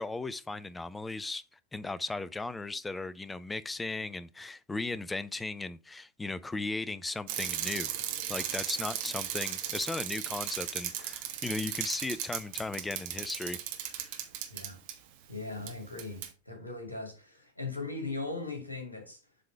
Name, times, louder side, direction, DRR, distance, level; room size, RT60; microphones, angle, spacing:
voice 1, 0.0-1.4 1.7-7.9 8.3-14.2, left 3 dB, 10° left, 0.5 m, -36 dB
Bicycle, 7.3-14.9 15.7-15.8 16.0-16.3, right 11 dB, 50° right, 1.2 m, -36 dB
voice 2, 15.3-19.2, left 3 dB, 85° left, 2.3 m, -39 dB
7.5 x 3.8 x 4.6 m
figure-of-eight pair, 90°, 0 cm